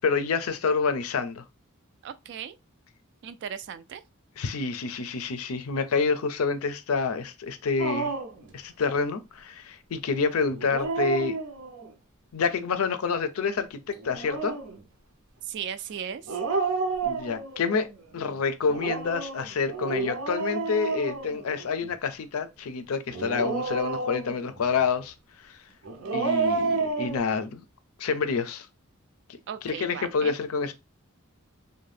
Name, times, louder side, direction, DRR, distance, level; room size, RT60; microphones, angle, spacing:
voice 1, 0.0-1.4 4.4-8.1 8.5-11.4 12.3-14.6 17.0-25.1 25.4-25.6 26.1-27.6 28.0-28.7 29.6-30.7, left 5 dB, 80° left, 0.5 m, -28 dB
voice 2, 2.0-2.6 3.2-4.0 15.4-16.4 29.5-30.4, right 8 dB, 55° right, 0.3 m, -37 dB
Dog, 7.8-8.4 10.5-11.9 14.0-14.8 16.3-17.7 18.7-21.9 23.1-24.5 25.8-27.2, right 4 dB, 75° right, 0.7 m, -30 dB
2.6 x 2.2 x 3.2 m
head